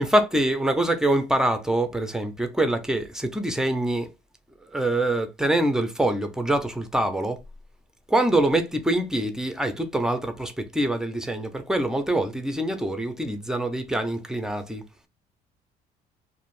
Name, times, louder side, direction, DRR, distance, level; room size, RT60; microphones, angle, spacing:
voice 1, 0.0-4.1 4.7-7.4 8.1-14.8, right 1 dB, 5° right, 0.5 m, -24 dB
2.6 x 2.4 x 3.0 m
cardioid pair, 110°, 17 cm